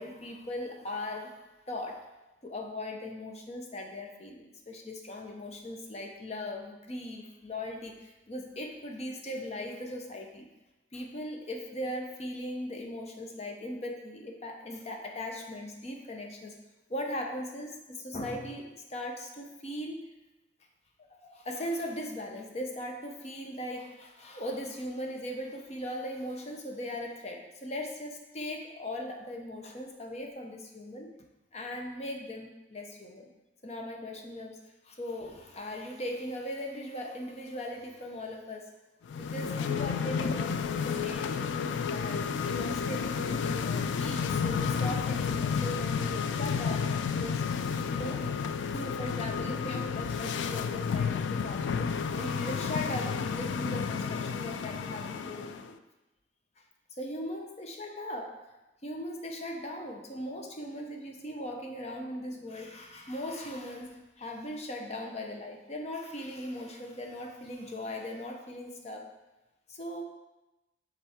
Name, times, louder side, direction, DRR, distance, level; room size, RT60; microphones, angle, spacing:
voice 1, 0.0-1.4 1.7-2.1 2.4-10.5 10.9-16.6 16.9-20.1 21.3-31.1 31.5-33.3 33.6-38.7 39.2-51.9 52.2-55.8 56.6-56.7 57.0-58.4 58.8-69.1 69.7-70.0, left 1 dB, 35° left, 2 dB, 0.7 m, -39 dB
sound 1, 39.1-55.7, left 6 dB, 80° left, 0.3 m, -31 dB
7.0 x 3.7 x 3.6 m, 1.0 s
head